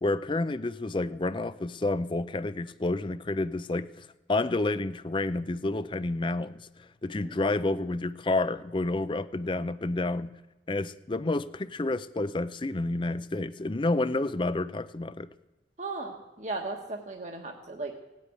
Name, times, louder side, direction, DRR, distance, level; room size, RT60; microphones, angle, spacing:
voice 1, 0.0-6.7 7.0-10.3 10.7-15.3, left 2 dB, 25° left, 0.5 m, -29 dB
voice 2, 15.8-17.9, right 3 dB, 40° right, 1.4 m, -36 dB
17.5 x 8.5 x 9.6 m
head